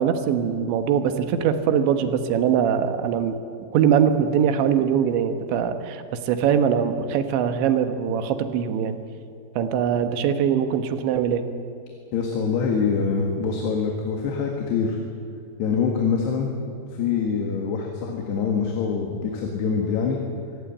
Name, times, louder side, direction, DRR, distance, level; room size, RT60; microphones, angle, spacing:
voice 1, 0.0-3.4 3.7-9.0 9.6-11.4, right 8 dB, 85° right, 9 dB, 3.5 m, -22 dB
voice 2, 12.1-15.0 15.6-16.5 16.9-20.2, left 5 dB, 70° left, 2 dB, 3.8 m, -24 dB
24.0 x 15.5 x 8.7 m, 2.4 s
omnidirectional pair, 5.1 m